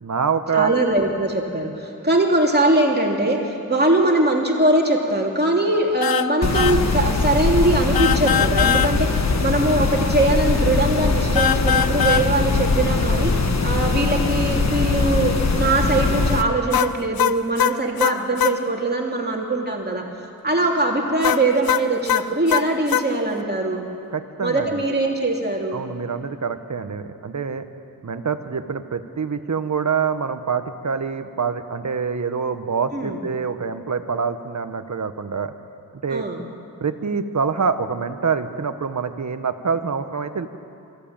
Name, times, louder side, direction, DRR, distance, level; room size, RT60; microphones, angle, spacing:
voice 1, 0.0-0.7 24.1-24.8 25.7-27.6 28.0-35.5 36.0-36.3 36.8-40.5, right 6 dB, 50° right, 9 dB, 1.2 m, -25 dB
voice 2, 0.5-20.0 20.4-23.8 24.4-25.8 32.9-33.2 36.1-36.4, right 2 dB, 30° right, 0 dB, 3.1 m, -21 dB
sound 1, 6.0-6.3 6.5-6.8 7.9-8.9 11.4-12.3 16.7-18.6 21.2-23.1, left 9 dB, 85° left, 0.6 m, -21 dB
sound 2, 6.4-16.4, left 4 dB, 50° left, 1.4 m, -21 dB
24.0 x 15.0 x 8.9 m, 2.6 s
wide cardioid pair, 80°, 35 cm